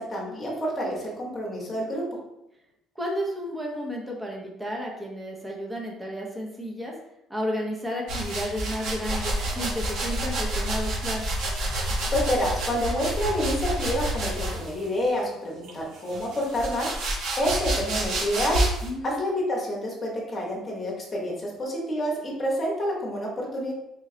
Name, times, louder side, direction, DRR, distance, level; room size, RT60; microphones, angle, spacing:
voice 1, 0.0-2.1 12.1-16.9 17.4-18.6 19.0-23.7, equal, 15° left, -4 dB, 1.0 m, -28 dB
voice 2, 3.0-6.9 7.3-11.3 18.8-19.1, equal, 5° right, -1 dB, 0.6 m, -32 dB
sound 1, 8.1-14.9 15.6-18.9, right 1 dB, 80° right, 1.3 m, -29 dB
4.1 x 2.2 x 3.7 m, 0.85 s
cardioid pair, 175°, 0 cm